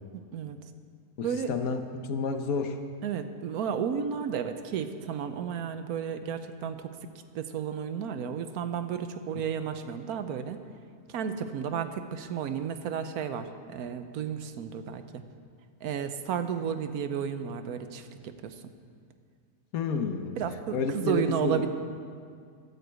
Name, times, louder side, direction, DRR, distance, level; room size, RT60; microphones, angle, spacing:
voice 1, 1.2-2.8 19.7-20.4 20.7-21.6, left 5 dB, 70° left, 7 dB, 1.3 m, -30 dB
voice 2, 3.0-6.9 7.3-10.6 11.1-15.2 15.8-18.5 20.4-21.7, right 7 dB, 85° right, 9 dB, 1.2 m, -32 dB
12.5 x 7.9 x 8.1 m, 2.1 s
omnidirectional pair, 1.6 m